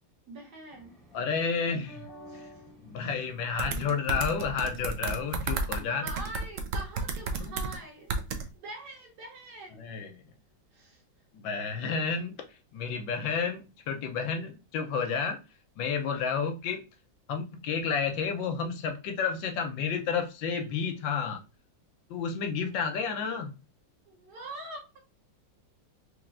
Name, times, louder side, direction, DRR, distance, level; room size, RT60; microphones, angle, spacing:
voice 1, 0.3-1.0 2.3-2.5 3.0-3.1 5.8-8.1 8.4-9.8 10.7-11.0 24.1-25.0, right 2 dB, 60° right, 1 dB, 1.4 m, -44 dB
sound 1, 0.7-6.4, right 1 dB, 25° right, 1.0 m, -52 dB
voice 2, 1.1-2.0 2.8-6.1 9.8-10.1 11.3-12.4 12.7-15.4 15.8-16.8 17.3-21.4 22.1-23.5, left 6 dB, 85° left, 5 dB, 1.4 m, -31 dB
sound 2, 3.6-5.8 6.1-7.8 8.1-8.4, right 3 dB, 85° right, 0.7 m, -32 dB
4.5 x 3.0 x 2.5 m, 0.29 s
omnidirectional pair, 2.1 m